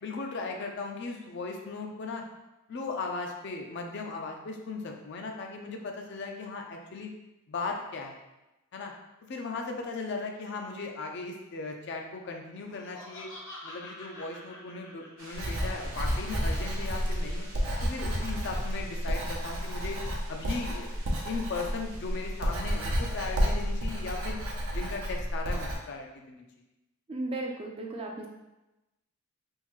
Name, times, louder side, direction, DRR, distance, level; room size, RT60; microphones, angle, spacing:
voice 1, 0.0-2.2 2.7-7.1 7.5-8.2 8.7-8.9 9.3-13.3 13.6-17.5 17.8-20.0 20.3-20.9 21.2-24.4 24.7-26.4, left 3 dB, 55° left, 2 dB, 0.5 m, -37 dB
Laughter, 12.5-15.8, left 1 dB, 90° left, 0.9 m, -46 dB
sound 1, 15.2-24.2, right 1 dB, 70° right, 1.1 m, -50 dB
Writing, 15.3-25.8, equal, 90° right, 0.7 m, -31 dB
voice 2, 27.1-28.3, right 2 dB, 25° right, 1 dB, 0.4 m, -35 dB
3.6 x 2.6 x 3.1 m, 0.99 s
head